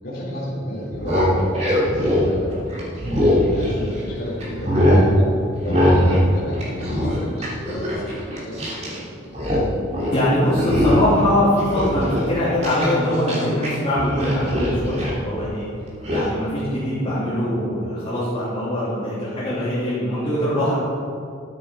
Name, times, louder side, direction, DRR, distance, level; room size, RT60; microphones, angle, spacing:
voice 1, 0.0-2.6 3.1-5.3 5.6-9.0, equal, 50° left, -9 dB, 3.1 m, -32 dB
sound 1, 0.8-4.1 4.4-5.1 5.6-6.3 6.5-9.0 9.2-9.7 9.9-10.2 10.6-11.2 11.6-13.7 14.0-15.2 16.0-16.3, left 1 dB, 35° right, 3.1 m, -21 dB
voice 2, 10.1-15.6 16.1-20.7, left 1 dB, 30° left, -11 dB, 2.9 m, -22 dB
13.0 x 9.2 x 5.1 m, 2.4 s
head